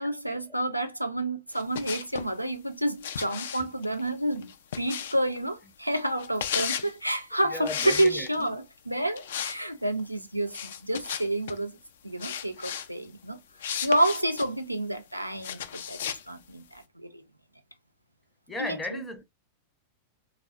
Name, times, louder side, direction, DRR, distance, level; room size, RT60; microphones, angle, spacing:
voice 1, 0.0-4.5 4.8-11.8 12.0-13.4 13.8-16.0 16.3-17.2 18.6-19.0, right 1 dB, 90° right, 0.4 m, -29 dB
sound 1, 1.5-2.3 3.0-5.4 6.2-6.9 7.6-8.5 9.2-9.6 9.9-10.0 10.5-11.6 12.2-12.9 13.6-14.5 15.4-16.2, left 9 dB, 60° left, 0.3 m, -34 dB
voice 2, 7.5-8.3 18.5-19.2, left 1 dB, 10° left, 0.6 m, -36 dB
3.4 x 2.0 x 2.3 m
figure-of-eight pair, 90°, 0 cm